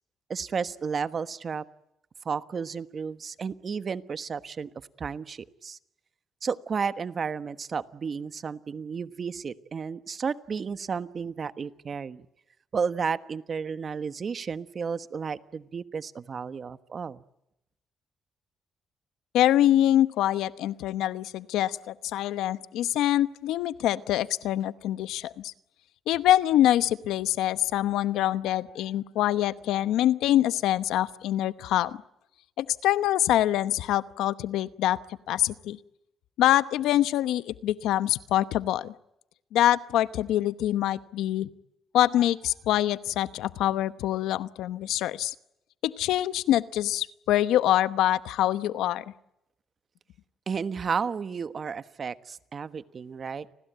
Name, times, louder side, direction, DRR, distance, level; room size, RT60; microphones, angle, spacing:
voice 1, 0.3-1.6 2.2-4.7 5.0-5.8 6.4-12.2 12.7-17.2 50.5-53.5, right 6 dB, 45° right, 13 dB, 1.2 m, -32 dB
voice 2, 19.3-25.5 26.1-32.0 32.6-35.0 35.3-35.8 36.4-38.9 39.5-41.5 41.9-45.3 45.8-49.0, left 13 dB, 90° left, 15 dB, 0.9 m, -25 dB
30.0 x 20.0 x 9.3 m, 0.86 s
cardioid pair, 90°, 0 cm